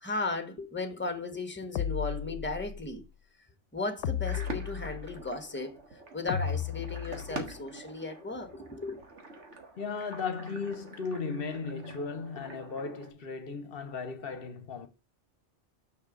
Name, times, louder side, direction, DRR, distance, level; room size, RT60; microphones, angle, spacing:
voice 1, 0.0-3.0 3.7-5.8 6.1-9.0, left 3 dB, 10° left, 1.1 m, -36 dB
sound 1, 1.8-2.8 4.0-5.3 6.3-7.5, left 8 dB, 85° left, 0.9 m, -34 dB
sound 2, 4.2-13.1, right 3 dB, 75° right, 1.9 m, -46 dB
voice 2, 9.8-14.9, left 5 dB, 55° left, 1.0 m, -36 dB
6.5 x 5.7 x 4.9 m
omnidirectional pair, 1.2 m